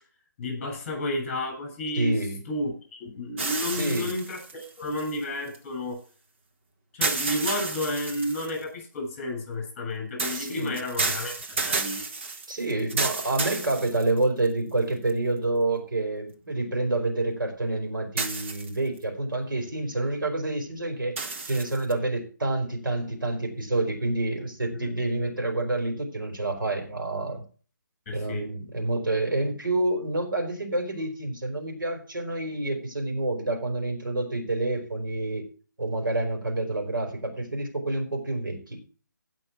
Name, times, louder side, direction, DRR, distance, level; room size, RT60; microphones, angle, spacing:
voice 1, 0.4-2.1 2.5-6.0 6.9-12.0 24.7-24.9 28.1-28.5, left 1 dB, 20° left, 2 dB, 6.9 m, -31 dB
voice 2, 1.9-2.4 3.7-4.1 10.3-10.7 12.5-21.2 21.5-27.4 28.1-35.5 35.8-38.8, right 2 dB, 90° right, 3 dB, 4.8 m, -28 dB
sound 1, 3.4-5.6 7.0-8.6 10.2-14.5 15.1-15.2 18.2-19.0 21.2-21.9, right 4 dB, 35° right, 1.4 m, -31 dB
16.5 x 5.9 x 4.7 m, 0.39 s
figure-of-eight pair, 160°, 11 cm